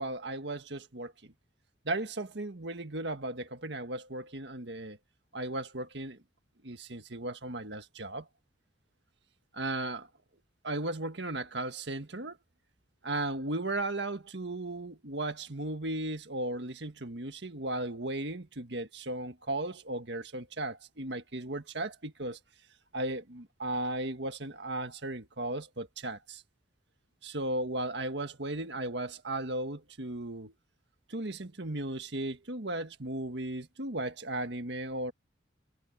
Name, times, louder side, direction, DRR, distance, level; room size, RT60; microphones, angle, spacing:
voice 1, 0.0-1.3 1.8-5.0 5.3-6.2 6.6-8.3 9.5-10.1 10.6-12.4 13.0-22.4 22.9-26.4 27.2-30.5 31.1-35.1, right 2 dB, 65° right, 1.8 m, -36 dB
head